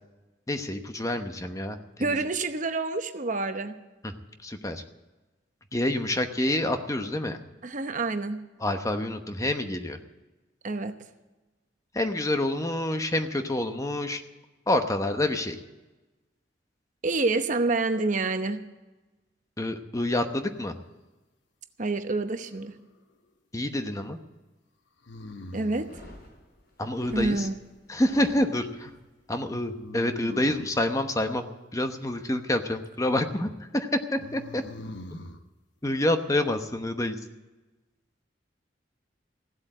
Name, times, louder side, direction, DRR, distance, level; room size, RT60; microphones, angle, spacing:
voice 1, 0.5-2.2 4.0-4.1 4.4-4.8 5.7-7.4 8.6-10.0 11.9-14.2 14.7-15.6 19.6-20.8 23.5-24.2 26.8-27.5 27.9-28.9 29.3-31.4 31.7-34.6 35.8-37.2, left 1 dB, 20° left, 7 dB, 0.9 m, -27 dB
voice 2, 2.0-3.7 7.6-8.4 10.6-10.9 17.0-18.6 21.8-22.7 25.5-25.9 27.1-27.5, right 3 dB, 45° right, 8 dB, 0.9 m, -27 dB
sound 1, 22.3-23.0 25.0-26.0 29.8-30.8 34.2-35.4, left 1 dB, 85° left, 1.0 m, -42 dB
sound 2, 25.7-28.9, left 1 dB, 60° left, 6.5 m, -47 dB
16.0 x 8.1 x 9.0 m, 1.1 s
head